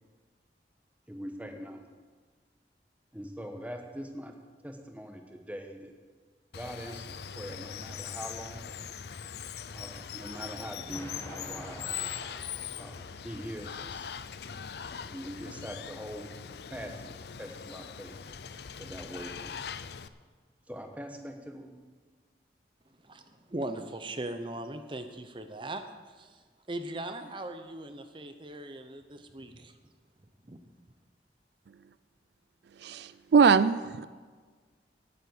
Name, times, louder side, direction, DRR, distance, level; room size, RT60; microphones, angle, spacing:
voice 1, 1.1-1.8 3.1-4.3 4.6-5.9 6.5-8.7 9.7-11.9 12.7-14.1 15.0-16.3 16.7-18.2 18.8-19.5 20.7-21.7, equal, 10° right, 4 dB, 1.2 m, -42 dB
Water, 6.5-20.1, left 7 dB, 70° left, 0.5 m, -41 dB
Explosion, 10.9-13.9, left 1 dB, 15° left, 1.3 m, -47 dB
voice 2, 23.0-25.8 26.2-26.4 26.7-29.7 30.5-30.6, right 1 dB, 30° right, 8 dB, 0.7 m, -39 dB
voice 3, 32.8-34.1, right 6 dB, 75° right, 15 dB, 0.4 m, -22 dB
10.0 x 9.6 x 7.8 m, 1.5 s
head